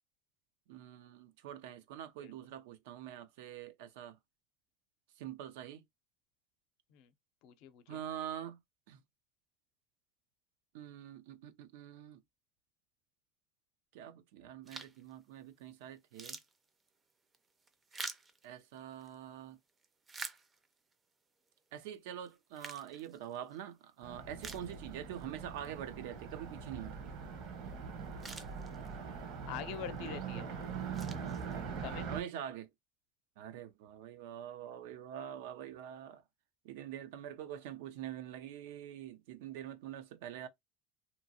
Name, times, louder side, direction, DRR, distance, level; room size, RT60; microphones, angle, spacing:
voice 1, 0.7-4.2 5.2-5.8 7.9-8.6 8.9-9.0 10.7-12.2 13.9-16.4 18.4-19.6 21.7-27.1 30.0-30.2 31.2-31.4 32.1-32.7 33.4-36.2 36.6-40.5, right 10 dB, 80° right, 0.5 m, -45 dB
voice 2, 7.4-8.0 29.5-30.5 31.8-32.1, left 10 dB, 65° left, 0.6 m, -44 dB
sound 1, 14.7-15.1 15.6-15.7 16.0-19.2 19.7-20.9 21.5-21.6 22.3-23.6 24.0-24.1 24.4-25.2 25.6-25.7 27.7-27.8 28.0-29.1 29.7-30.1 30.6-31.9, right 4 dB, 20° right, 0.5 m, -48 dB
Car passing by, 24.0-32.2, right 6 dB, 65° right, 1.1 m, -42 dB
2.9 x 2.5 x 2.7 m
supercardioid pair, 130°, 0 cm